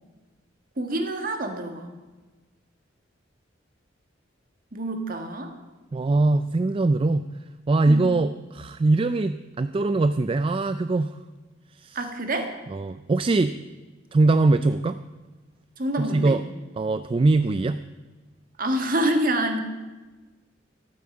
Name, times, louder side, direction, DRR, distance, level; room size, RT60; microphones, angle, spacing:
voice 1, 0.8-1.9 4.7-5.5 7.8-8.2 11.9-12.5 15.8-16.4 18.6-19.6, right 1 dB, 45° right, 5 dB, 1.7 m, -27 dB
voice 2, 5.9-7.3 7.7-11.2 11.8-12.0 12.7-13.6 14.1-15.0 16.0-16.4 16.8-17.8, right 2 dB, 30° right, 12 dB, 0.3 m, -22 dB
12.5 x 9.3 x 7.7 m, 1.2 s
head